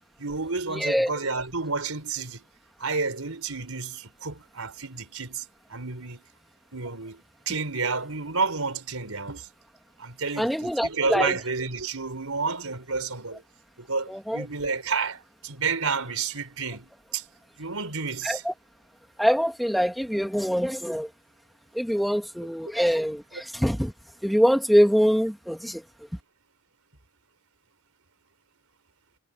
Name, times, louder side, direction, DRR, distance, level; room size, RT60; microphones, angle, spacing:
voice 1, 0.2-2.4 2.8-6.2 6.7-9.5 10.0-13.4 13.8-17.2 17.6-18.4, right 4 dB, 80° right, 4.1 m, -30 dB
voice 2, 0.7-1.1 10.4-11.3 14.1-14.4 18.2-18.5 19.2-21.1 21.7-23.9 24.2-25.8, equal, ahead, 1.9 m, -24 dB
head